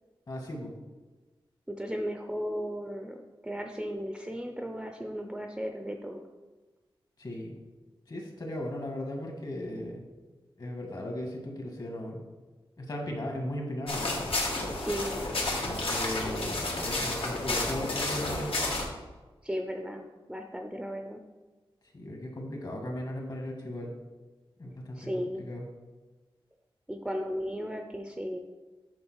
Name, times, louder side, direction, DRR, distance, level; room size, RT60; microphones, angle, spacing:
voice 1, 0.3-0.7 7.2-7.6 8.1-10.0 10.6-12.2 12.8-14.1 15.6-18.5 21.9-23.9 24.6-25.6, left 1 dB, 50° left, 0 dB, 1.7 m, -37 dB
voice 2, 1.7-6.2 14.8-15.1 19.4-21.2 24.9-25.4 26.9-28.4, equal, 5° right, 4 dB, 0.5 m, -35 dB
sound 1, 13.9-18.9, left 2 dB, 80° left, 1.7 m, -31 dB
8.6 x 3.8 x 6.3 m, 1.3 s
wide cardioid pair, 115°, 9 cm